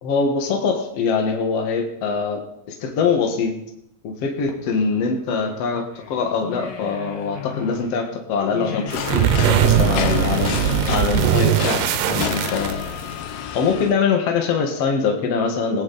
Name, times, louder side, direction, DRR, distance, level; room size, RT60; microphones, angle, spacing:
voice 1, 0.0-3.6 4.0-10.6 10.9-12.8 13.5-15.8, left 5 dB, 55° left, 3 dB, 2.3 m, -23 dB
sound 1, 4.2-13.2, left 7 dB, 70° left, 1.0 m, -34 dB
sound 2, 8.9-13.9, left 8 dB, 90° left, 2.6 m, -29 dB
sound 3, 8.9-13.1, right 12 dB, 90° right, 2.3 m, -20 dB
19.0 x 10.5 x 4.0 m, 0.81 s
omnidirectional pair, 3.8 m